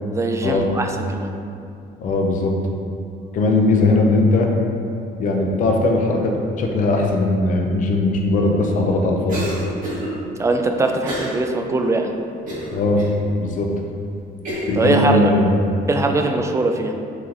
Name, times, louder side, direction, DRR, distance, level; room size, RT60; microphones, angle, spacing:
voice 1, 0.1-1.3 10.4-12.1 14.7-15.3 15.9-16.9, right 2 dB, 15° right, 4 dB, 0.3 m, -21 dB
voice 2, 2.0-2.5 3.3-4.5 5.2-9.4 12.7-13.0 13.4-13.7 14.7-15.5, left 2 dB, 50° left, 1 dB, 0.6 m, -19 dB
Cough, 9.3-10.1 11.0-11.4 11.8-11.9 12.5-13.1 13.7-13.8 14.5-14.8, equal, 50° right, 1.4 m, -28 dB
3.9 x 3.0 x 3.8 m, 2.4 s
cardioid pair, 110°, 17 cm